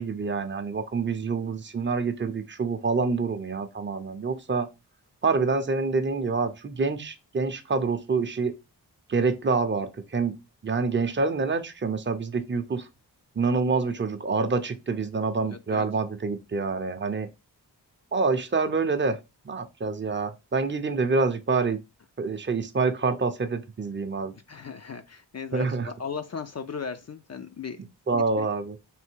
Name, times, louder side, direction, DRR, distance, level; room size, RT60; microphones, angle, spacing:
voice 1, 0.0-4.7 5.2-8.5 9.1-10.4 10.6-12.9 13.4-17.3 18.1-19.2 19.4-21.8 22.2-24.3 25.5-25.9 28.1-28.8, right 4 dB, 30° right, 0.6 m, -27 dB
voice 2, 15.5-15.9 24.5-27.8 28.1-28.5, left 6 dB, 40° left, 0.4 m, -37 dB
3.4 x 2.6 x 4.5 m
wide cardioid pair, 105°, 40 cm